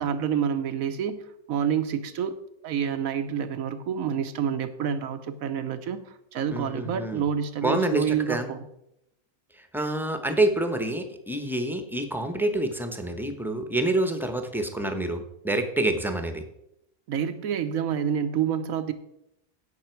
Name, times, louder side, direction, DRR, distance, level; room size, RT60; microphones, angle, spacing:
voice 1, 0.0-2.4 2.6-8.7 17.1-18.9, right 8 dB, 80° right, 10 dB, 1.3 m, -28 dB
voice 2, 6.5-7.2 7.6-8.5 9.6-16.5, right 1 dB, ahead, 6 dB, 0.8 m, -27 dB
16.0 x 6.0 x 4.5 m, 0.82 s
omnidirectional pair, 1.4 m